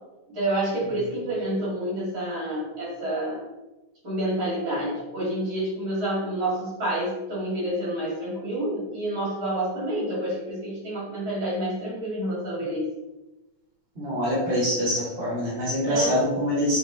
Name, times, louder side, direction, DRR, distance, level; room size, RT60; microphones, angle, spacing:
voice 1, 0.3-3.4 4.0-12.9 15.8-16.1, right 1 dB, 40° right, -7 dB, 3.0 m, -28 dB
voice 2, 13.9-16.8, equal, 20° right, -8 dB, 2.3 m, -25 dB
8.2 x 4.5 x 3.1 m, 1.0 s
omnidirectional pair, 3.4 m